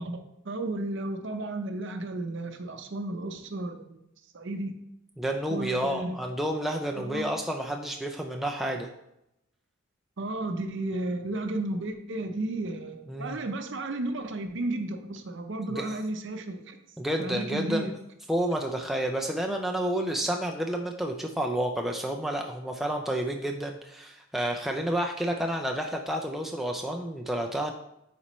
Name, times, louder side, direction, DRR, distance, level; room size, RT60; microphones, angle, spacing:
voice 1, 0.0-4.0 4.3-4.7 5.5-6.2 6.9-7.3 10.2-16.8 17.2-18.0, right 2 dB, 55° right, 7 dB, 0.6 m, -33 dB
voice 2, 5.2-8.9 13.1-13.4 15.7-16.0 17.0-17.9 18.3-27.7, right 1 dB, ahead, 1 dB, 0.3 m, -30 dB
8.3 x 4.3 x 3.0 m, 0.84 s
head